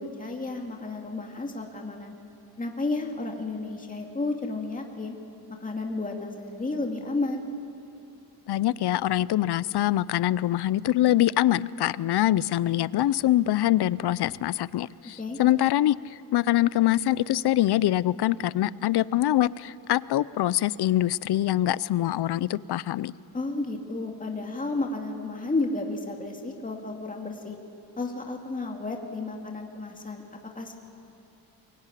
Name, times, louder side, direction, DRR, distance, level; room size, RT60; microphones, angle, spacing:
voice 1, 0.0-2.1 2.6-5.1 5.6-7.4 15.2-15.4 23.3-27.6 28.0-30.7, left 2 dB, 20° left, 1 dB, 2.3 m, -32 dB
voice 2, 8.5-23.1, left 13 dB, 80° left, 20 dB, 0.6 m, -24 dB
23.5 x 22.5 x 9.9 m, 2.9 s
wide cardioid pair, 145°, 39 cm